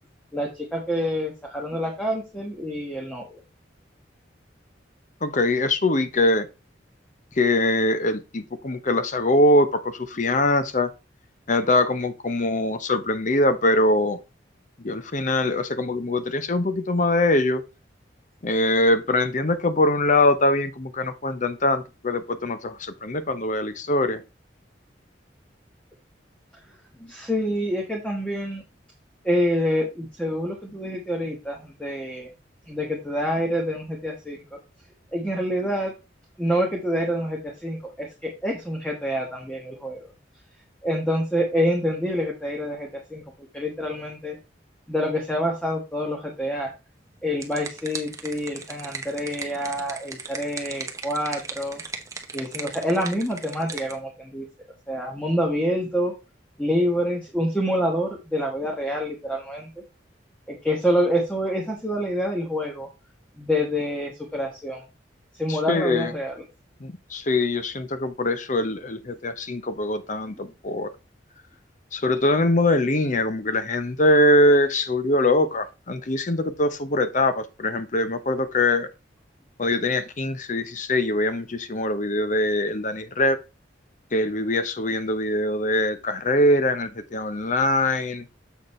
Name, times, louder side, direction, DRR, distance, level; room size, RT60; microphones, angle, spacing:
voice 1, 0.3-3.4 27.0-28.6 29.2-32.3 32.7-34.4 35.1-35.9 36.4-40.0 40.8-43.2 43.5-44.4 44.9-46.7 47.2-51.8 52.3-54.4 54.9-56.1 56.6-59.7 60.5-62.9 63.4-64.8 65.4-66.3, equal, 5° left, 1.3 m, -27 dB
voice 2, 5.2-6.5 7.4-10.9 11.5-14.2 14.8-17.6 18.4-24.2 65.5-66.1 66.8-70.9 71.9-78.9 79.6-83.4 84.1-88.2, left 1 dB, 45° left, 0.8 m, -22 dB
sound 1, 47.1-54.0, right 4 dB, 15° right, 0.9 m, -37 dB
7.2 x 6.4 x 3.2 m
head